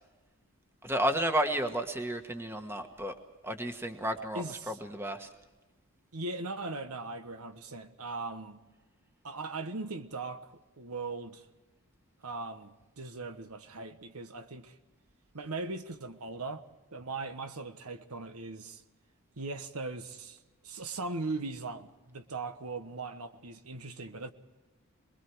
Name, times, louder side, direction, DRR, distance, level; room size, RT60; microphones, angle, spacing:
voice 1, 0.8-3.1 3.4-5.3, right 1 dB, 10° right, 1.4 m, -32 dB
voice 2, 4.3-4.8 6.1-8.6 9.2-11.5 12.2-14.8 15.3-16.6 16.9-18.8 19.4-24.3, right 3 dB, 80° right, 1.3 m, -39 dB
27.0 x 22.0 x 4.7 m
head